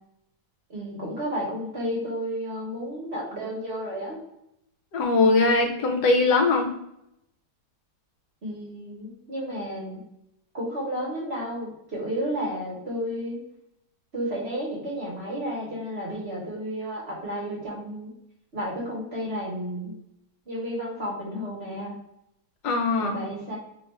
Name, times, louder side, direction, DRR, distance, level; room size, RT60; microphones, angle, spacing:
voice 1, 0.7-4.2 8.4-10.0 10.5-13.4 14.1-18.1 18.5-19.9 20.5-22.0 23.0-23.6, equal, 45° right, -3 dB, 1.1 m, -32 dB
voice 2, 4.9-6.7 22.6-23.2, left 3 dB, 75° left, 3 dB, 1.2 m, -21 dB
3.0 x 2.4 x 4.1 m, 0.80 s
omnidirectional pair, 1.9 m